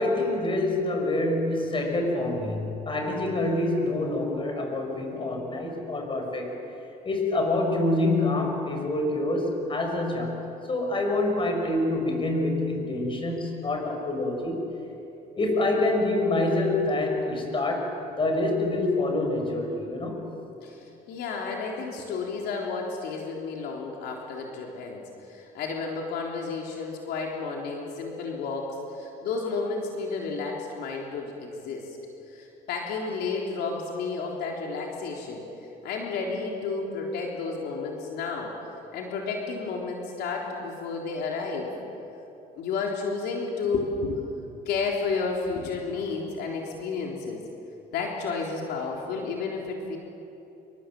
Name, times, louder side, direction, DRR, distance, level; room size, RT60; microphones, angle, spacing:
voice 1, 0.0-6.5 7.0-14.7 15.4-20.2, left 2 dB, 30° left, 3 dB, 6.3 m, -26 dB
voice 2, 20.6-31.9 32.3-35.4 35.8-38.5 38.9-41.7 42.6-44.3 44.7-47.4 47.9-50.0, left 4 dB, 80° left, -1 dB, 3.7 m, -31 dB
28.5 x 24.5 x 7.7 m, 2.9 s
cardioid pair, 110°, 17 cm